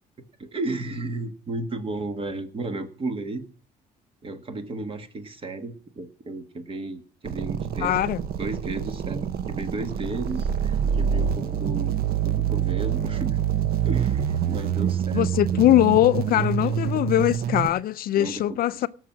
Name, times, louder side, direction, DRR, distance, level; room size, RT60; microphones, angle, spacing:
voice 1, 0.4-3.5 4.2-8.0 8.4-13.4 13.8-15.6 16.6-16.7 18.2-18.8, right 2 dB, 30° right, 1.6 m, -34 dB
sound 1, 7.3-17.7, right 9 dB, 60° right, 0.8 m, -26 dB
voice 2, 7.8-8.2 15.1-18.9, left 13 dB, 60° left, 0.5 m, -21 dB
18.0 x 6.2 x 6.1 m
cardioid pair, 110°, 17 cm